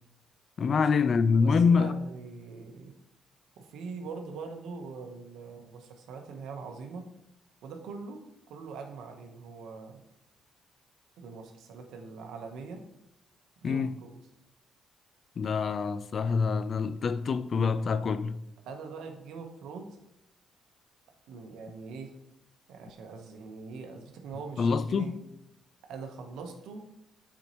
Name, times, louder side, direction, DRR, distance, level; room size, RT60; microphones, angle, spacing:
voice 1, 0.6-2.0 13.6-13.9 15.4-18.4 24.6-25.2, left 5 dB, 50° left, 0.4 m, -26 dB
voice 2, 1.4-2.9 3.6-7.1 7.6-8.2 8.5-10.0 11.2-12.8 13.6-14.2 18.6-19.9 21.3-22.1 22.7-25.2 25.9-26.9, right 4 dB, 85° right, 1.0 m, -42 dB
8.4 x 4.4 x 3.0 m
cardioid pair, 90°, 0 cm